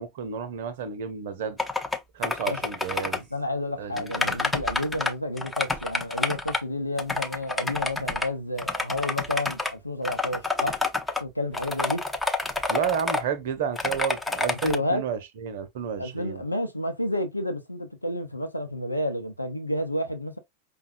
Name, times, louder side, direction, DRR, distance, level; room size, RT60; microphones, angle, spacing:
voice 1, 0.0-1.6 2.1-3.2 3.8-4.4 12.7-16.4, right 7 dB, 55° right, 0.7 m, -31 dB
sound 1, 1.6-2.0 2.2-3.2 4.0-5.1 5.4-6.6 7.0-8.3 8.6-9.7 10.0-11.2 11.5-13.2 13.8-14.8, left 2 dB, 10° left, 0.6 m, -28 dB
voice 2, 3.2-10.8 11.2-12.0 14.6-15.0 16.0-20.4, left 1 dB, 85° left, 0.7 m, -30 dB
5.3 x 2.2 x 2.5 m
figure-of-eight pair, 90°, 0 cm